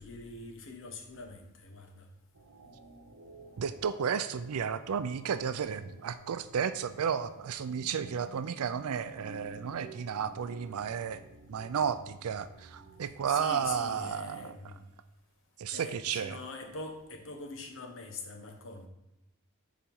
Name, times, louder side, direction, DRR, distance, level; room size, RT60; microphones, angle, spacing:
voice 1, 0.0-2.1 2.6-2.7 13.3-14.9 15.7-18.9, left 3 dB, 65° left, 4 dB, 1.2 m, -43 dB
sound 1, 2.3-13.9, right 3 dB, 90° right, 1.0 m, -53 dB
voice 2, 3.6-11.2 11.5-14.6 15.6-16.4, right 7 dB, 75° right, 12 dB, 0.4 m, -33 dB
7.3 x 4.9 x 5.5 m, 0.91 s
head